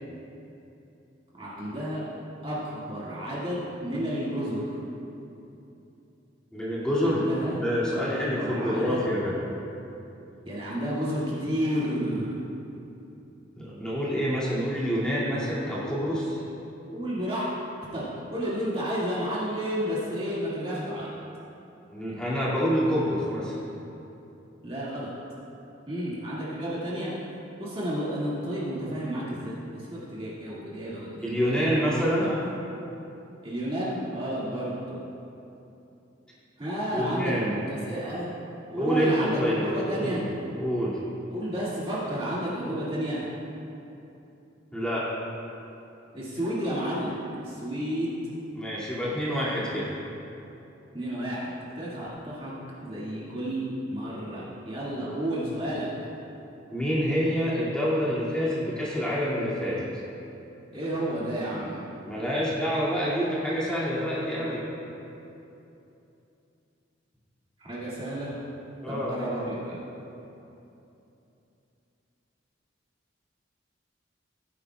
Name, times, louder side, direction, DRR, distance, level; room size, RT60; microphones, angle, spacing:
voice 1, 1.3-2.1 2.4-4.7 7.0-7.6 8.1-9.1 10.5-12.3 16.9-17.5 17.9-21.1 24.6-25.1 25.9-27.1 27.6-31.7 32.2-32.3 33.4-35.0 36.6-37.3 37.6-38.3 38.7-40.2 41.3-43.2 46.1-48.2 50.9-52.5 52.8-55.9 60.7-61.8 67.6-68.4 68.9-69.8, equal, 30° right, -8 dB, 2.1 m, -31 dB
voice 2, 6.5-7.2 7.5-9.3 13.6-16.4 21.9-23.6 31.2-32.3 36.9-37.6 38.8-39.6 40.0-40.2 40.6-41.0 44.7-45.1 48.5-49.9 56.7-59.8 62.0-64.6 68.8-69.2, equal, 5° left, -9 dB, 2.3 m, -27 dB
17.0 x 9.9 x 2.3 m, 2.9 s
head